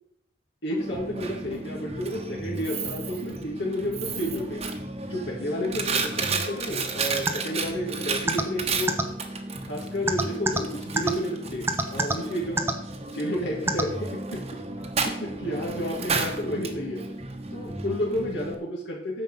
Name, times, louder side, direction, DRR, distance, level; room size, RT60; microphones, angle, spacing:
voice 1, 0.6-4.7 5.1-9.0 9.6-12.7 13.1-14.6 15.0-17.1 17.5-19.2, equal, 75° left, -3 dB, 2.2 m, -31 dB
Coin (dropping), 0.8-18.5, right 3 dB, 35° right, 1.2 m, -33 dB
sound 1, 7.3-7.4 8.3-8.4 8.9-9.0 10.1-10.6 11.0-11.1 11.7-12.1 12.6-12.7 13.7-13.8, right 2 dB, 15° right, 0.7 m, -23 dB
9.2 x 7.1 x 5.6 m, 0.76 s
head